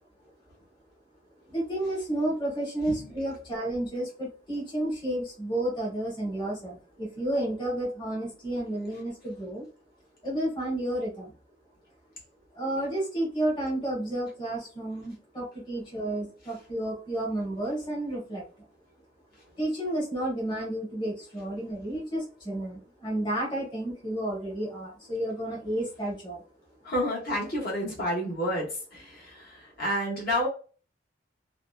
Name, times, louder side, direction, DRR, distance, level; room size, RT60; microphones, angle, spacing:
voice 1, 1.5-9.7 10.2-11.3 12.5-18.4 19.6-26.4, right 1 dB, 25° left, -4 dB, 1.0 m, -31 dB
voice 2, 26.8-30.5, equal, 50° left, -5 dB, 1.0 m, -30 dB
2.7 x 2.1 x 2.2 m, 0.37 s
head